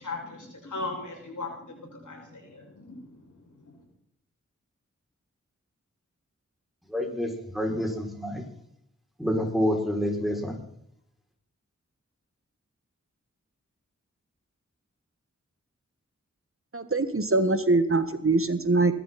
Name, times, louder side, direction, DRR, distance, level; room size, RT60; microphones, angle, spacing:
voice 1, 0.0-3.8, left 3 dB, 85° left, 0 dB, 6.6 m, -38 dB
voice 2, 6.9-8.4 9.2-10.5, equal, ahead, 1 dB, 6.2 m, -28 dB
voice 3, 16.7-18.9, right 3 dB, 45° right, 10 dB, 1.6 m, -23 dB
21.0 x 13.0 x 4.3 m, 0.73 s
cardioid pair, 40°, 30 cm